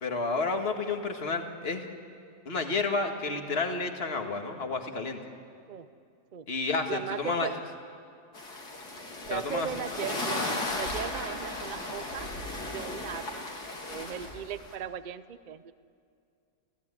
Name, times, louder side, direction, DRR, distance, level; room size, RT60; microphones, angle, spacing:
voice 1, 0.0-1.8 2.5-5.2 6.5-7.5 9.3-9.7, left 3 dB, 40° left, 5 dB, 2.0 m, -30 dB
voice 2, 6.9-7.5 9.3-10.4 10.8-12.3 12.7-13.5 13.9-15.7, right 8 dB, 60° right, 13 dB, 0.5 m, -37 dB
sound 1, 8.3-14.7, left 2 dB, 70° left, 3.9 m, -35 dB
29.0 x 16.0 x 9.7 m, 2.4 s
omnidirectional pair, 1.8 m